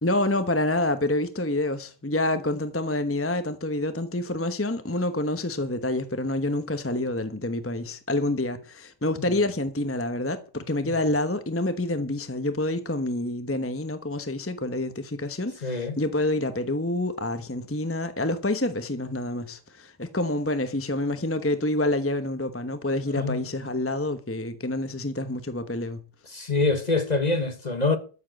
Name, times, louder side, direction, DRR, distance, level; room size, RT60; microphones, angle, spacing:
voice 1, 0.0-26.0, left 1 dB, 10° left, 0.7 m, -27 dB
voice 2, 15.6-16.0 23.2-23.4 26.3-28.0, left 3 dB, 30° left, 1.2 m, -25 dB
13.5 x 7.3 x 7.6 m
omnidirectional pair, 1.8 m